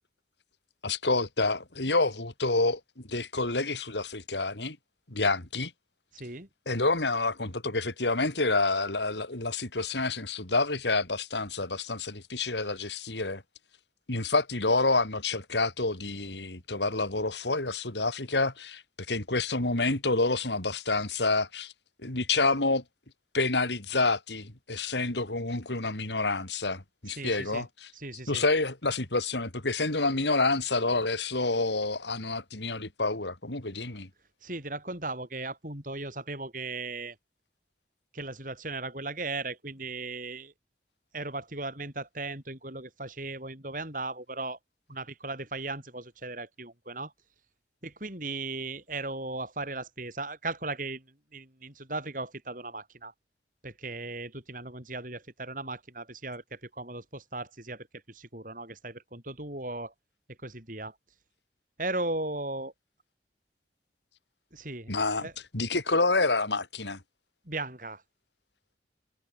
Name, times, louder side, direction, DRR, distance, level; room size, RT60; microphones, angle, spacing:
voice 1, 0.8-4.8 5.1-5.7 6.7-13.4 14.1-18.8 19.1-21.7 22.0-22.8 23.3-27.9 28.3-34.1 64.9-65.3 65.5-67.0, left 3 dB, 85° left, 3.7 m, -28 dB
voice 2, 6.1-6.5 12.6-12.7 27.1-27.6 27.9-28.4 34.4-37.2 38.1-40.5 41.1-44.6 44.9-47.1 47.8-51.0 51.3-53.1 53.6-59.9 60.4-60.9 61.8-62.7 64.5-65.3 67.5-68.0, right 2 dB, 50° right, 8.0 m, -37 dB
head